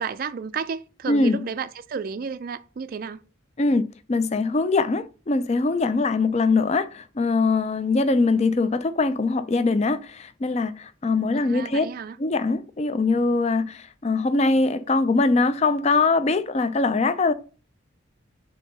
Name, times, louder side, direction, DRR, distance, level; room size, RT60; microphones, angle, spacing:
voice 1, 0.0-3.2 11.3-12.2, right 6 dB, 45° right, 0.3 m, -32 dB
voice 2, 1.1-1.5 3.6-11.9 12.2-17.3, left 3 dB, 30° left, 0.4 m, -22 dB
7.2 x 2.8 x 5.4 m
head